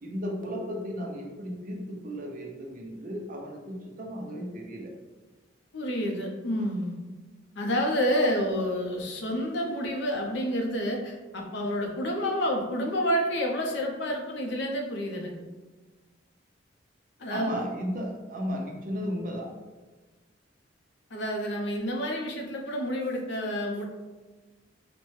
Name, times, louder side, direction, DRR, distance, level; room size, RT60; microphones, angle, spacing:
voice 1, 0.0-4.9 17.3-19.5, equal, 45° right, 0 dB, 0.7 m, -34 dB
voice 2, 5.7-7.0 7.6-15.3 17.2-17.6 21.1-23.9, equal, 65° left, 1 dB, 0.6 m, -29 dB
4.2 x 2.2 x 3.1 m, 1.3 s
head